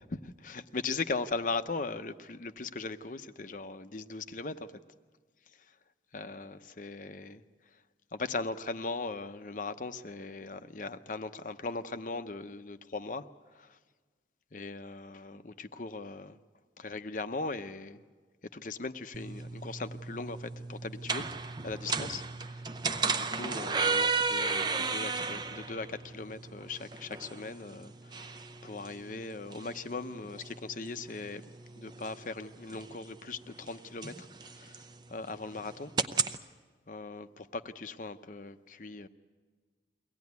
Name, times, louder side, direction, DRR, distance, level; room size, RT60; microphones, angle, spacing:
voice 1, 0.1-4.7 6.1-7.4 8.1-13.8 14.5-16.4 16.8-18.0 18.5-22.7 23.0-28.2 28.6-31.4 31.7-35.9 36.9-39.1, left 3 dB, 45° left, 10 dB, 0.7 m, -39 dB
sound 1, 19.1-36.4, right 4 dB, 25° right, 0.6 m, -35 dB
23.5 x 17.5 x 9.5 m, 1.4 s
head